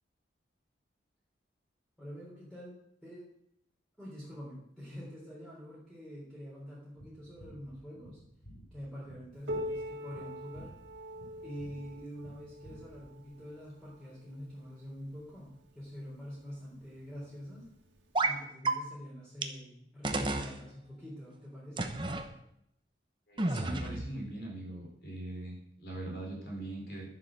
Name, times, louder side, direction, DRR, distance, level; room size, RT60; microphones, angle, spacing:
voice 1, 2.0-2.8 3.0-3.3 4.0-8.2 8.7-10.7 11.4-17.6 18.2-22.0, equal, 5° left, -7 dB, 3.6 m, -45 dB
sound 1, 7.0-13.3, equal, 80° left, 3.8 m, -54 dB
Piano, 9.5-14.8 15.7-15.8 16.3-16.4 17.1-17.2 18.3-18.4, equal, 85° right, 2.2 m, -42 dB
sound 2, 18.1-18.4 18.6-18.7 19.4-19.5 20.0-20.5 21.8-22.2 23.4-24.1, right 2 dB, 25° right, 0.9 m, -31 dB
voice 2, 23.3-27.0, right 1 dB, 55° left, -1 dB, 4.1 m, -41 dB
11.0 x 7.7 x 6.7 m, 0.75 s
head